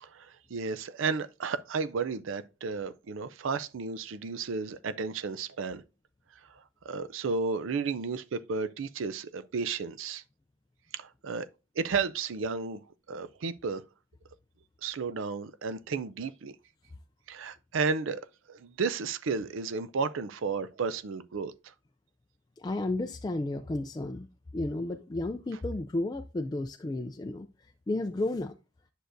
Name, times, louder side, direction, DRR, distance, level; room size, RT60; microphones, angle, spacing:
voice 1, 0.0-5.8 6.5-10.2 10.9-11.5 11.8-12.8 13.1-13.8 14.8-16.5 17.3-18.2 18.5-21.5, right 4 dB, 75° right, 0.5 m, -33 dB
voice 2, 22.6-24.3 24.5-27.5 27.9-28.5, left 2 dB, 20° left, 0.3 m, -32 dB
10.0 x 6.3 x 2.6 m
head